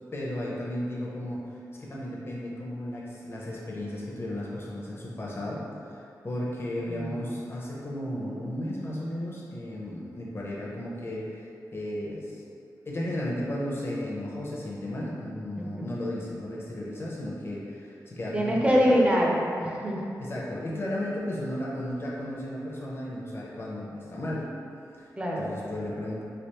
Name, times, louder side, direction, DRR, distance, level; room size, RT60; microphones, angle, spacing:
voice 1, 0.1-1.4 1.8-12.4 12.9-19.0 20.2-24.5 25.0-25.1 25.4-26.2, left 1 dB, 35° left, -5 dB, 0.6 m, -34 dB
voice 2, 6.9-7.2 15.6-15.9 18.3-20.0 25.2-25.5, equal, 15° right, -3 dB, 0.5 m, -24 dB
3.3 x 2.9 x 2.9 m, 2.6 s
wide cardioid pair, 150°, 7 cm